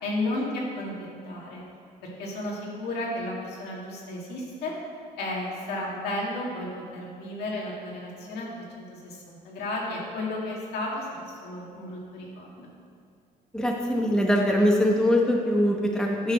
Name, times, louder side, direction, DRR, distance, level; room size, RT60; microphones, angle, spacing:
voice 1, 0.0-1.6 2.0-4.7 5.2-12.7, left 1 dB, 75° left, -3 dB, 2.1 m, -33 dB
voice 2, 13.5-16.3, equal, 5° left, 0 dB, 0.9 m, -22 dB
9.4 x 4.1 x 6.2 m, 2.3 s
cardioid pair, 110°, 17 cm